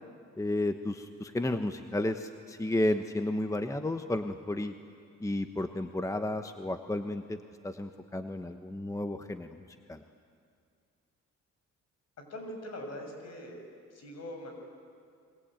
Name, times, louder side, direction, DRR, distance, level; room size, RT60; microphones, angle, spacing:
voice 1, 0.4-4.7 5.2-7.4 7.6-10.0, left 1 dB, 10° left, 7 dB, 1.1 m, -32 dB
voice 2, 12.2-13.6 13.9-14.5, left 1 dB, 60° left, 4 dB, 6.7 m, -42 dB
29.0 x 22.5 x 9.0 m, 2.3 s
cardioid pair, 90°, 30 cm